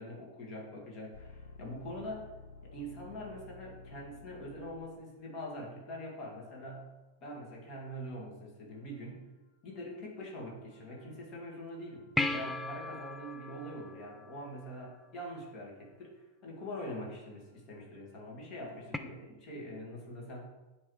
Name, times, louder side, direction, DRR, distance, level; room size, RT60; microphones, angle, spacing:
voice 1, 0.0-2.3 2.6-6.9 7.2-9.3 9.6-20.4, equal, 35° left, -2 dB, 2.1 m, -44 dB
sound 1, 1.1-5.2 10.7-12.2 12.5-12.6 18.7-18.8, left 3 dB, 65° left, 0.5 m, -52 dB
sound 2, 12.2-14.9 18.9-19.0, left 2 dB, 5° left, 0.4 m, -36 dB
9.7 x 3.2 x 3.3 m, 1.1 s
figure-of-eight pair, 95°, 0 cm